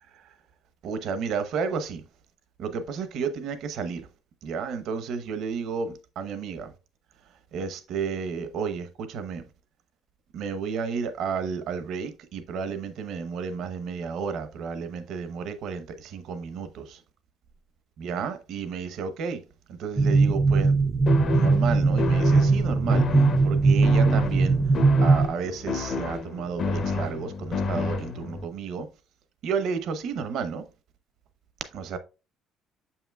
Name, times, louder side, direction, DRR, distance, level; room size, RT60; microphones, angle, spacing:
voice 1, 0.8-2.0 2.6-4.1 4.4-6.7 7.5-9.4 10.3-17.0 18.0-19.4 19.7-20.7 21.3-24.6 25.0-28.9 29.4-30.6 31.7-32.0, right 6 dB, 65° right, 0.8 m, -32 dB
sound 1, 20.0-25.3, right 3 dB, 10° right, 0.5 m, -20 dB
sound 2, 21.1-28.4, left 4 dB, 45° left, 0.7 m, -31 dB
7.2 x 5.7 x 2.3 m
cardioid pair, 140°, 0 cm